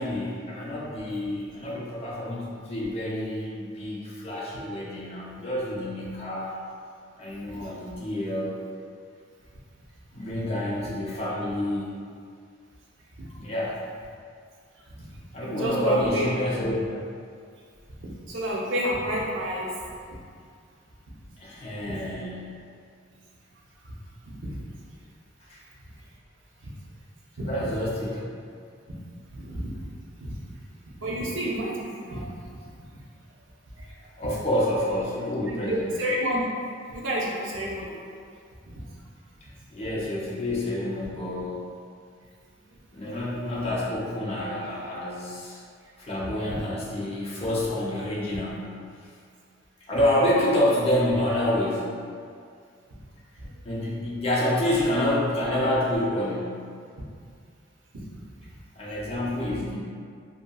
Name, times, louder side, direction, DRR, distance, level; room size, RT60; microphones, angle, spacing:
voice 1, 0.0-6.5 7.2-8.6 10.1-12.0 13.4-13.8 15.3-16.9 21.4-22.5 25.5-25.6 27.4-28.3 34.2-36.0 39.7-41.7 42.9-45.6 46.0-48.8 49.9-52.0 53.6-56.7 58.8-59.8, left 1 dB, 30° left, -6 dB, 0.5 m, -28 dB
voice 2, 15.4-16.3 18.0-19.7 21.9-22.0 24.2-24.6 27.4-27.5 29.3-29.8 30.2-30.4 31.0-32.3 32.9-33.0 33.8-33.9 34.2-34.4 35.5-36.5 36.9-38.0 38.7-38.8 53.4-53.5 59.4-59.7, equal, 75° right, -5 dB, 0.6 m, -30 dB
2.7 x 2.6 x 2.3 m, 2.2 s
head